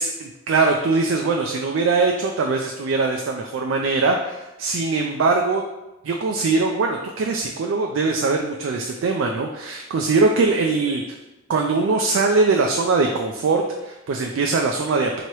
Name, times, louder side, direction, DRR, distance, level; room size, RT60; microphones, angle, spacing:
voice 1, 0.0-5.6 6.0-11.0 11.5-15.2, right 3 dB, 65° right, 2 dB, 0.3 m, -21 dB
3.0 x 2.8 x 4.5 m, 1.0 s
head